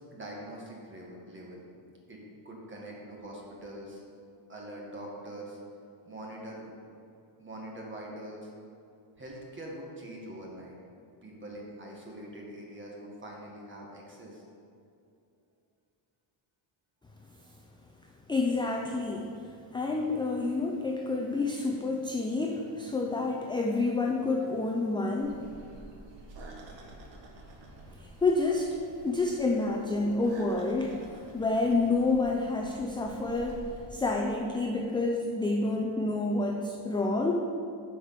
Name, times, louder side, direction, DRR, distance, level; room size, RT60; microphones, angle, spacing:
voice 1, 0.1-1.7 2.1-2.2 2.4-4.0 4.5-5.6 6.0-6.7 7.4-8.5 9.2-10.8 11.2-14.4, right 1 dB, 25° right, -2 dB, 1.8 m, -43 dB
voice 2, 18.3-19.3 19.7-25.4 28.0-33.6 33.9-37.4, left 3 dB, 10° left, 1 dB, 0.3 m, -29 dB
sound 1, 25.2-33.9, right 2 dB, 60° right, 1.6 m, -49 dB
9.8 x 5.1 x 6.6 m, 2.6 s
cardioid pair, 160°, 49 cm